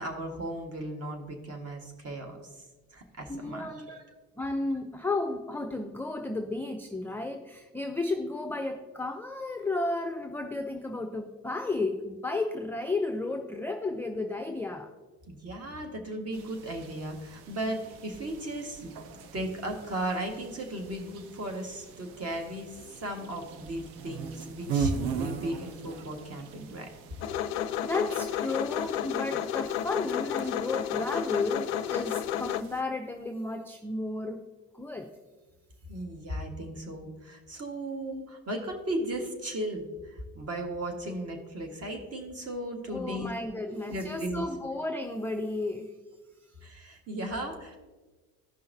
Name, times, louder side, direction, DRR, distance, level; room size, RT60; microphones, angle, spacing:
voice 1, 0.0-2.5 2.9-4.0 15.3-18.9 19.3-26.9 35.9-43.3 43.6-44.4 46.6-47.8, right 1 dB, 30° right, 3 dB, 1.6 m, -36 dB
voice 2, 3.3-3.9 4.4-14.9 27.8-34.4 34.7-35.1 42.9-45.9, left 2 dB, 5° left, 5 dB, 0.4 m, -33 dB
sound 1, 16.3-32.8, right 5 dB, 65° right, 0.8 m, -40 dB
sound 2, 27.2-32.6, left 10 dB, 60° left, 0.5 m, -31 dB
14.0 x 5.6 x 2.7 m, 1.3 s
figure-of-eight pair, 55°, 47 cm